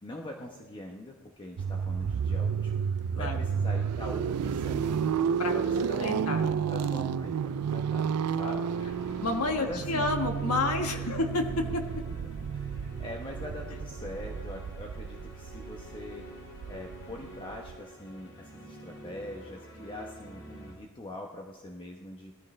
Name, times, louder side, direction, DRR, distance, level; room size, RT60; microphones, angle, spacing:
voice 1, 0.0-2.8 3.2-5.1 5.5-8.7 9.5-10.1 10.9-11.2 11.6-11.7 12.1-16.3 16.7-22.4, left 1 dB, 20° left, 1 dB, 0.9 m, -43 dB
sound 1, 1.6-17.8, right 7 dB, 85° right, 0.4 m, -31 dB
voice 2, 6.0-6.4 8.4-8.6 9.2-12.0, left 2 dB, 80° left, 5 dB, 1.4 m, -30 dB
sound 2, 8.7-20.8, right 1 dB, 60° left, 2.9 m, -47 dB
19.0 x 14.0 x 3.2 m, 1.2 s
head